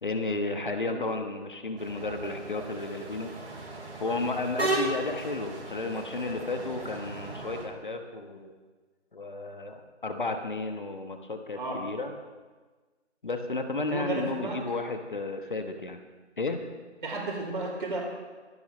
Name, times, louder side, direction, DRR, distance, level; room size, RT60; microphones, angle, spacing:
voice 1, 0.0-3.3 4.0-8.5 9.1-12.1 13.2-16.0 16.4-16.7, left 3 dB, 45° left, 6 dB, 1.3 m, -33 dB
sound 1, 1.8-7.6, right 2 dB, 60° right, 4.5 m, -35 dB
voice 2, 13.9-14.6 17.0-18.0, right 2 dB, 45° right, -2 dB, 4.3 m, -33 dB
25.5 x 10.5 x 3.2 m, 1.3 s
figure-of-eight pair, 170°, 35 cm